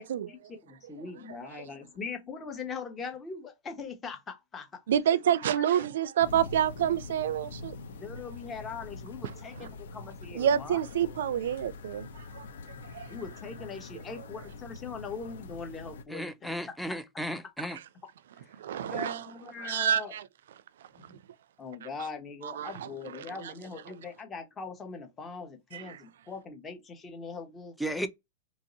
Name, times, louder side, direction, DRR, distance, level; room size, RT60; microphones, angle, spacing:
voice 1, 0.0-4.8 5.4-5.8 7.9-10.8 13.1-16.7 18.8-20.1 21.6-27.8, left 5 dB, 20° left, 1.0 m, -41 dB
voice 2, 4.9-7.8 9.2-9.3 9.6-9.7 10.3-12.1 12.3-12.4 12.9-13.1 18.6-19.3 19.6-20.2 21.8-21.9 22.4-22.9 25.7-26.0, right 9 dB, 80° right, 0.4 m, -28 dB
sound 1, 6.2-16.0, left 3 dB, 85° left, 0.7 m, -44 dB
voice 3, 16.1-17.8 27.8-28.1, equal, ahead, 0.5 m, -34 dB
3.0 x 2.7 x 3.9 m
supercardioid pair, 150°, 0 cm